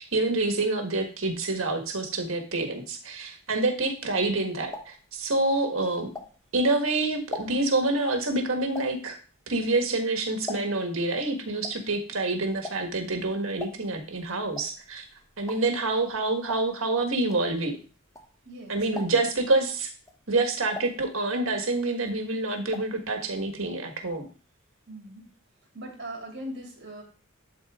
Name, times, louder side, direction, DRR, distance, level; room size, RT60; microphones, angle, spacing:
voice 1, 0.0-6.1 6.5-9.2 9.5-15.0 15.4-17.8 18.7-19.9 20.3-24.3, right 2 dB, 70° right, 4 dB, 1.6 m, -27 dB
sound 1, 4.2-6.7 7.1-11.0 11.3-18.6 18.9-19.5 19.9-21.7 21.9-23.0 23.3-23.4 23.6-23.7, left 2 dB, 15° left, 0.8 m, -42 dB
voice 2, 18.4-19.2 24.9-25.2 25.7-27.0, equal, 55° right, 0 dB, 2.7 m, -40 dB
11.5 x 4.0 x 3.7 m, 0.36 s
head